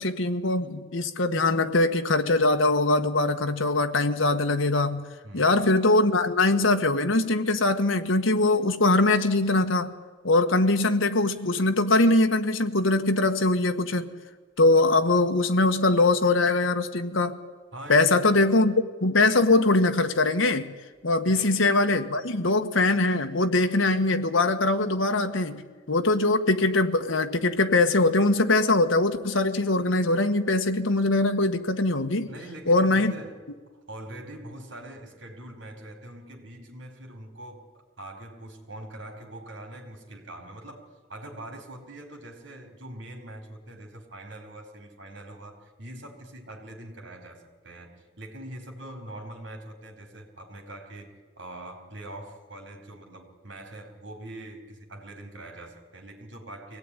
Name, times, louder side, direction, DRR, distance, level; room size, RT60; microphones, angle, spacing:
voice 1, 0.0-5.0 5.3-9.9 10.2-14.1 14.6-17.4 17.9-18.7 19.0-20.7 21.0-25.6 25.9-32.3 32.7-33.1, left 2 dB, 85° left, 7 dB, 1.6 m, -22 dB
voice 2, 5.2-5.6 17.7-18.4 21.3-21.6 32.3-33.5 33.9-56.8, right 1 dB, 65° right, 4 dB, 4.4 m, -43 dB
24.0 x 17.5 x 9.9 m, 1.4 s
head